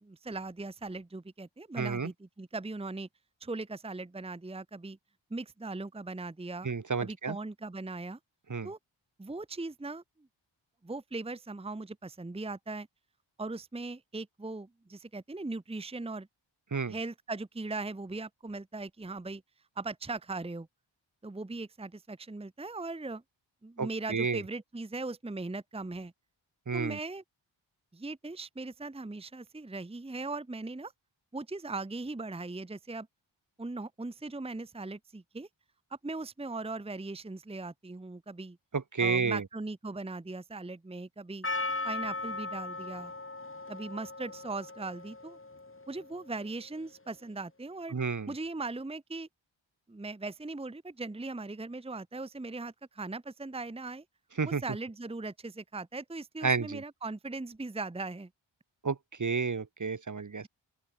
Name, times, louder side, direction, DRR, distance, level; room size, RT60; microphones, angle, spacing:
voice 1, 0.0-3.1 3.4-5.0 5.3-6.7 7.0-8.2 8.6-8.8 9.2-10.0 10.8-12.9 13.4-16.3 16.9-19.4 19.8-20.7 21.2-23.2 23.6-26.1 26.7-27.2 27.9-30.9 31.3-33.1 33.6-35.5 36.0-38.6 39.0-41.5 41.8-43.1 43.7-45.4 45.9-47.9 48.3-49.3 49.9-54.0 54.4-58.3, right 3 dB, 10° right, 0.9 m, -39 dB
voice 2, 1.8-2.1 6.6-7.4 8.5-8.7 16.7-17.0 23.8-24.4 26.7-27.0 38.7-39.4 47.9-48.3 54.4-54.6 56.4-56.8 58.8-60.5, right 5 dB, 40° right, 1.3 m, -31 dB
Percussion, 41.4-46.4, left 3 dB, 25° left, 2.5 m, -38 dB
open air
wide cardioid pair, 65°, 48 cm